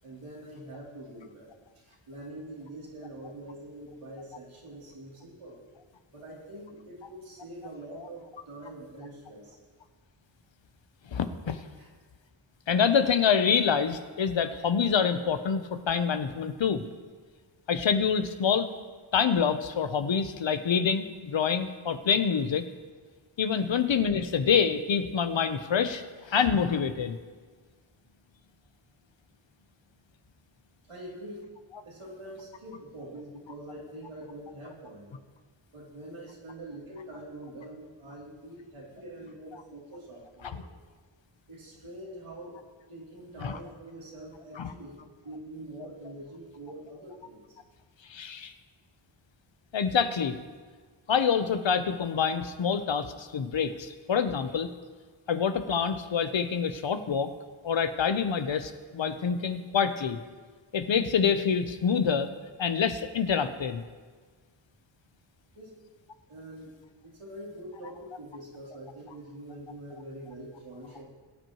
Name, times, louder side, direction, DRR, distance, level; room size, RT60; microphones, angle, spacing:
voice 1, 0.0-5.6 6.1-9.6 11.8-11.9 30.8-31.5 31.8-35.1 35.7-40.7 41.5-42.6 42.9-47.6 65.5-65.8 66.3-66.8 67.0-71.0, right 1 dB, 85° right, -5 dB, 3.4 m, -44 dB
voice 2, 11.1-11.6 12.7-16.8 17.7-18.7 19.1-22.6 23.4-27.2 43.4-43.6 44.6-44.7 48.1-48.5 49.7-50.4 51.1-54.7 55.3-57.3 57.6-60.2 60.7-62.3 62.6-63.8, left 6 dB, 65° left, 9 dB, 0.9 m, -26 dB
21.5 x 9.2 x 3.1 m, 1.5 s
wide cardioid pair, 90°, 48 cm